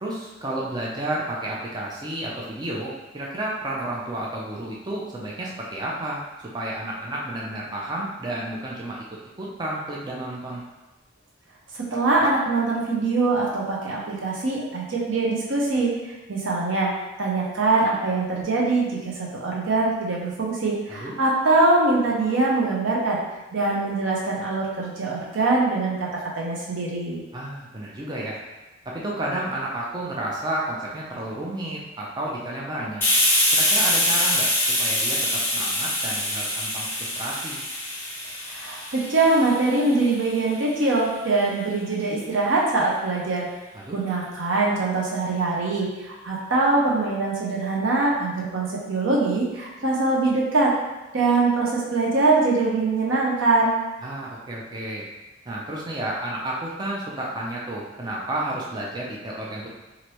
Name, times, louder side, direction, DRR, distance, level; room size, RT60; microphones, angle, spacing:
voice 1, 0.0-6.2 6.5-9.0 9.4-10.6 20.9-21.1 27.3-28.4 28.9-33.0 33.5-34.5 34.8-37.6 43.7-44.0 54.0-55.1 55.5-59.7, right 1 dB, 20° right, -4 dB, 0.4 m, -31 dB
voice 2, 11.7-15.9 16.3-16.9 17.2-23.2 23.5-27.2 38.5-43.5 43.9-50.7 51.1-53.8, right 3 dB, 80° right, -3 dB, 0.7 m, -23 dB
Hiss, 33.0-40.4, left 1 dB, 10° left, 0.8 m, -24 dB
3.1 x 2.5 x 2.9 m, 1.1 s
head